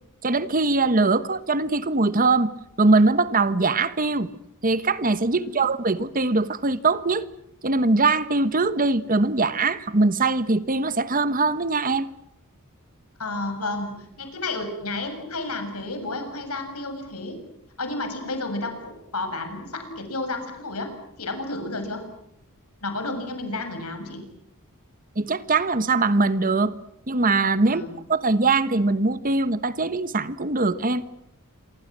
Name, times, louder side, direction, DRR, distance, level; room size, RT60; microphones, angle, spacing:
voice 1, 0.2-2.5 2.8-4.3 4.6-7.2 7.6-12.1 25.2-26.7 27.1-27.8 28.1-31.0, right 3 dB, 40° right, 1.3 m, -22 dB
voice 2, 13.2-17.4 17.8-20.9 21.2-22.1 22.8-24.2 27.7-27.9, left 2 dB, 75° left, 7.1 m, -31 dB
27.5 x 25.0 x 7.5 m
head